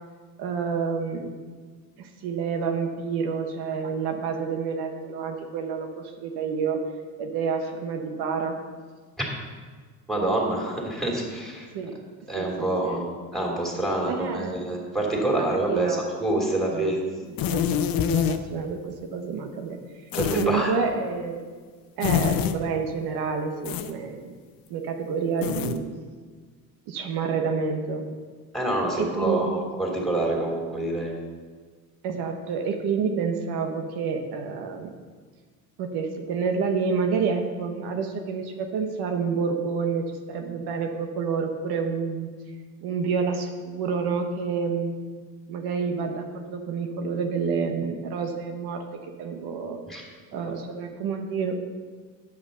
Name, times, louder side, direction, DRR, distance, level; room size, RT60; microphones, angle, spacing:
voice 1, 0.4-1.3 2.0-6.8 7.2-8.5 11.7-12.0 12.4-13.0 14.1-14.5 15.3-16.1 16.7-17.0 17.2-19.8 20.3-21.4 22.0-24.3 24.7-25.8 26.9-28.1 28.9-29.6 32.0-34.9 35.8-42.3 42.8-44.9 45.5-48.8 49.2-49.8 50.3-51.7, right 5 dB, 75° right, 4 dB, 1.2 m, -29 dB
voice 2, 10.1-11.7 12.3-17.0 20.1-20.7 28.5-31.1 49.9-50.0, right 1 dB, ahead, -2 dB, 2.8 m, -26 dB
sound 1, 17.4-18.4 20.1-20.5 22.0-22.6 23.6-23.9 25.4-25.8, left 9 dB, 65° left, 0.7 m, -25 dB
9.3 x 5.9 x 6.6 m, 1.5 s
cardioid pair, 110°, 38 cm